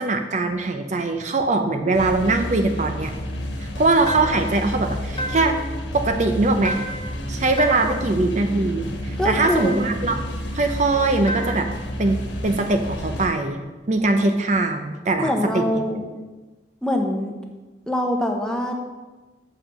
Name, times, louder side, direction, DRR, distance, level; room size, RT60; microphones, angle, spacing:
voice 1, 0.0-3.1 3.6-5.6 5.9-6.8 7.3-10.3 10.5-11.7 12.0-13.6 13.9-15.6, right 2 dB, 40° right, 6 dB, 0.6 m, -21 dB
sound 1, 1.7-13.3, equal, 85° left, 1.3 m, -31 dB
sound 2, 4.1-4.6 5.2-5.7 6.7-7.2 7.6-8.1 9.4-10.0 11.3-11.8, equal, 30° left, 0.9 m, -31 dB
voice 2, 9.2-9.7 15.2-16.1 16.8-17.3 17.9-18.7, left 1 dB, 5° left, 2 dB, 0.9 m, -23 dB
7.1 x 5.7 x 7.1 m, 1.2 s
head